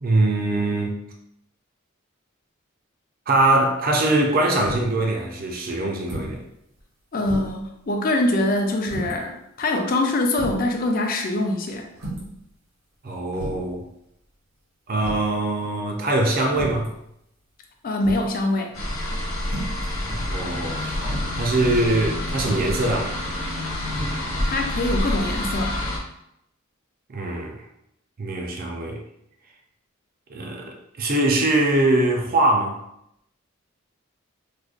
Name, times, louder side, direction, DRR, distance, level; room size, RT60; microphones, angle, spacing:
voice 1, 0.0-1.0 3.3-6.4 13.0-13.8 14.9-16.9 20.1-23.1 27.1-27.6 28.2-29.0 30.3-32.8, right 2 dB, 45° right, 1 dB, 0.5 m, -22 dB
sound 1, 4.6-5.0 6.0-6.4 6.8-6.9 7.2-7.6 8.8-9.2 9.9-10.0 10.3-10.7 11.9-12.4 13.3-13.7 15.0-15.3 16.5-16.9 18.0-18.4 19.4-19.8 21.0-21.3 22.4-22.8 23.9-24.1, right 1 dB, 85° right, 1.3 m, -33 dB
voice 2, 7.1-11.9 17.8-18.7 24.4-25.8, left 2 dB, 45° left, 2 dB, 0.5 m, -24 dB
sound 2, 18.7-26.0, left 1 dB, 80° left, 0.9 m, -27 dB
4.8 x 2.1 x 2.4 m, 0.80 s
head